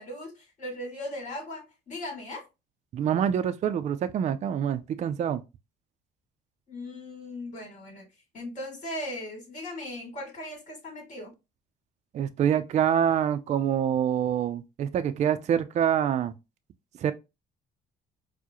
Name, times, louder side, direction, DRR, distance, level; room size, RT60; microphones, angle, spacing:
voice 1, 0.0-2.5 6.7-8.1 8.3-11.3, left 1 dB, 50° left, 2.0 m, -38 dB
voice 2, 2.9-5.4 12.1-16.3 17.0-17.1, right 9 dB, 45° right, 0.4 m, -26 dB
4.5 x 2.1 x 2.9 m
cardioid pair, 110°, 17 cm